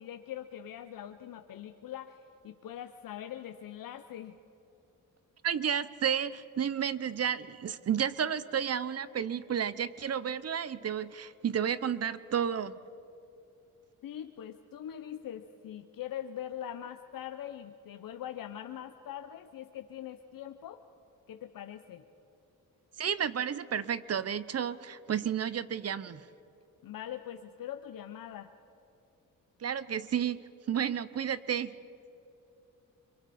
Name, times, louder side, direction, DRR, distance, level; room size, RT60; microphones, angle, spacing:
voice 1, 0.0-4.4 14.0-20.8 21.3-22.0 26.8-28.5, left 10 dB, 75° left, 8 dB, 0.8 m, -42 dB
voice 2, 5.4-12.8 23.0-26.2 29.6-30.4 30.7-31.7, right 8 dB, 45° right, 16 dB, 0.7 m, -31 dB
29.0 x 22.5 x 4.3 m, 2.7 s
cardioid pair, 95°, 34 cm